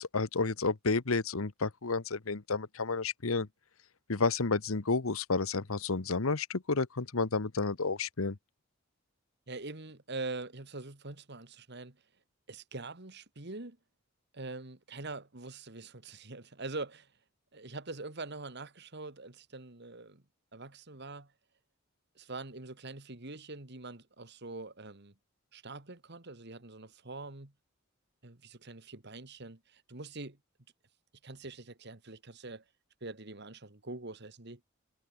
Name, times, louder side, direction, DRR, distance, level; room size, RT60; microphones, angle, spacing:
voice 1, 0.0-3.5 4.1-8.4, left 4 dB, 80° left, 1.2 m, -31 dB
voice 2, 9.5-12.0 12.5-13.8 14.3-17.1 17.5-20.2 20.5-21.3 22.2-25.1 25.5-27.5 28.2-30.4 31.2-32.6 33.0-34.6, right 3 dB, 55° right, 2.1 m, -44 dB
head